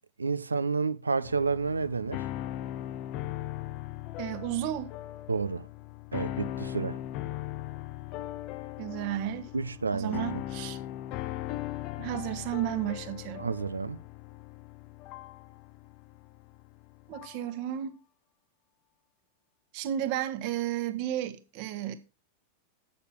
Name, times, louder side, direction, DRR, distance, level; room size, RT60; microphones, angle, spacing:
voice 1, 0.2-2.3 5.3-5.7 6.1-7.0 9.5-10.4 13.4-14.0, right 4 dB, 75° right, 0.6 m, -30 dB
sound 1, 1.2-17.5, left 14 dB, 40° left, 0.5 m, -39 dB
voice 2, 4.2-4.9 8.8-9.5 9.9-10.8 12.0-13.5 17.1-18.0 19.7-21.9, right 12 dB, 45° right, 1.5 m, -33 dB
8.4 x 6.8 x 6.0 m
figure-of-eight pair, 90°, 0 cm